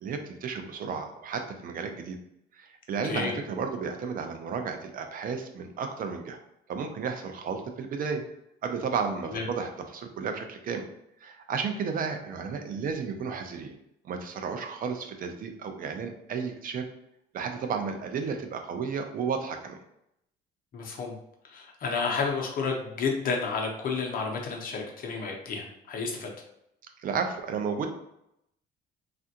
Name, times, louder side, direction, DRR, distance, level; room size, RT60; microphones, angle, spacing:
voice 1, 0.0-2.2 2.6-6.4 6.7-8.2 8.6-10.8 11.2-13.7 14.0-16.8 17.3-19.8 27.0-27.9, right 5 dB, 50° right, 6 dB, 0.5 m, -33 dB
voice 2, 3.0-3.4 9.3-9.4 20.7-21.1 21.4-26.3, left 4 dB, 50° left, 0 dB, 0.8 m, -31 dB
3.3 x 2.5 x 2.7 m, 0.81 s
cardioid pair, 120°, 19 cm